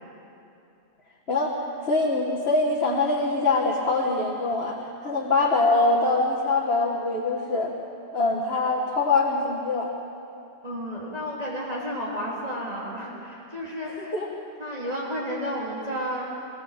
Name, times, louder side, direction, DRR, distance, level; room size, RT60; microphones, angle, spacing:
voice 1, 1.3-4.8 5.0-7.7 8.1-9.9 13.9-14.3, left 3 dB, 60° left, -4 dB, 2.0 m, -24 dB
voice 2, 10.6-14.1 14.6-16.4, equal, 35° right, -6 dB, 3.5 m, -32 dB
25.0 x 16.5 x 7.5 m, 2.7 s
omnidirectional pair, 1.2 m